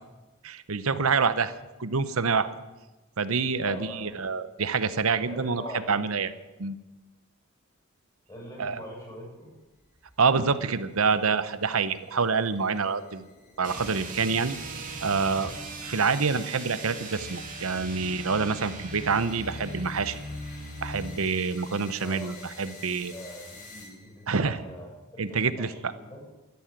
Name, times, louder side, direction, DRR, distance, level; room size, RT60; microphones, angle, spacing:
voice 1, 0.4-1.5 1.8-2.5 3.2-5.6 5.9-6.3 6.6-6.8 8.6-8.8 10.2-13.3 13.6-14.6 15.0-15.5 15.8-20.2 20.8-23.1 24.3-24.6 25.2-25.7, right 5 dB, 75° right, 13 dB, 0.9 m, -26 dB
voice 2, 3.6-4.1 5.3-6.0 8.3-9.5 22.0-22.8 23.1-26.2, left 1 dB, 20° left, -3 dB, 7.3 m, -43 dB
sound 1, 9.7-24.3, left 3 dB, 40° left, 5.7 m, -51 dB
sound 2, 13.6-21.1, right 2 dB, 40° right, 2.8 m, -39 dB
13.0 x 11.5 x 9.0 m, 1.1 s
head